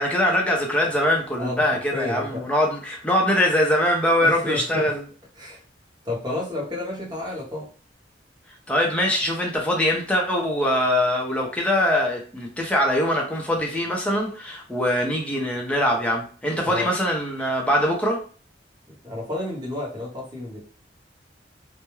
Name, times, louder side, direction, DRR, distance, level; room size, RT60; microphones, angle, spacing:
voice 1, 0.0-5.0 8.7-18.2, left 1 dB, 5° left, -1 dB, 0.5 m, -22 dB
voice 2, 1.9-2.4 4.2-4.8 5.4-5.6 6.0-7.7 16.7-16.9 19.0-20.6, left 2 dB, 20° right, -3 dB, 0.9 m, -30 dB
2.2 x 2.1 x 3.0 m, 0.40 s
head